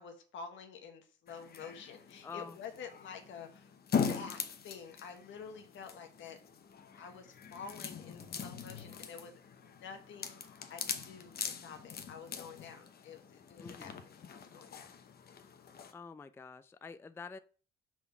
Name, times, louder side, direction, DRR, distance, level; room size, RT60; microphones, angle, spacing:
voice 1, 0.0-3.7 4.1-6.4 7.0-10.4 10.7-13.9 14.3-14.9, left 6 dB, 70° left, 1.4 m, -49 dB
sound 1, 1.3-15.9, left 6 dB, 50° left, 0.9 m, -41 dB
voice 2, 2.2-2.6 13.6-14.0 15.9-17.4, left 5 dB, 10° left, 0.3 m, -47 dB
6.0 x 3.7 x 5.8 m
cardioid pair, 90°, 20 cm